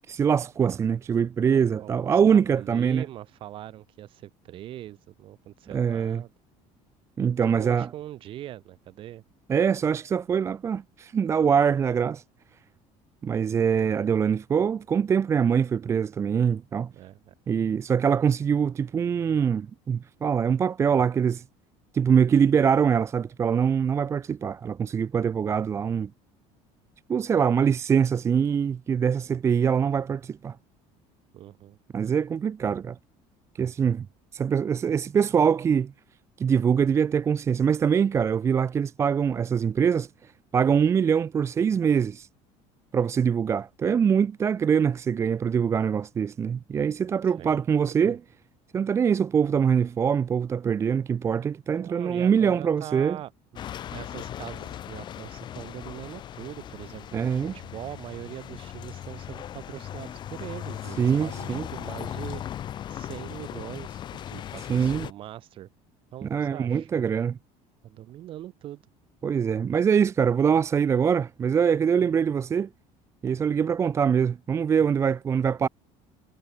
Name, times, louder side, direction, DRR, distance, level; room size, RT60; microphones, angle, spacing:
voice 1, 0.1-3.0 5.7-6.2 7.2-7.9 9.5-12.2 13.2-16.9 17.5-21.4 21.9-26.1 27.1-30.6 31.9-33.0 33.5-34.1 34.3-35.9 36.4-42.3 42.9-48.2 48.7-53.2 57.1-57.5 61.0-61.7 64.7-65.1 66.2-67.4 69.2-72.7 73.2-75.7, right 7 dB, 20° right, 0.7 m, -23 dB
voice 2, 1.4-6.3 7.4-9.2 16.9-17.3 31.3-31.8 47.4-47.6 48.0-48.2 51.7-53.3 53.9-62.4 62.9-65.7 66.1-66.9 67.8-68.8, right 13 dB, 40° right, 1.8 m, -41 dB
sound 1, 53.6-65.1, left 11 dB, 35° left, 3.2 m, -38 dB
cardioid pair, 180°, 14 cm